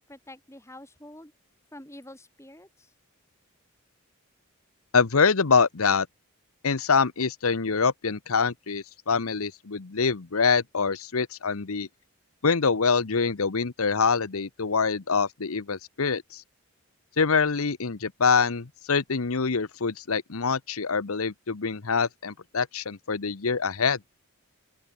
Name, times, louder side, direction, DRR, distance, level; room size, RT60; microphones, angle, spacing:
voice 1, 0.1-1.3 1.7-2.9, left 1 dB, 10° left, 3.4 m, -47 dB
voice 2, 4.9-6.1 6.6-11.9 12.4-16.4 17.2-24.0, left 5 dB, 75° left, 0.9 m, -25 dB
open air
head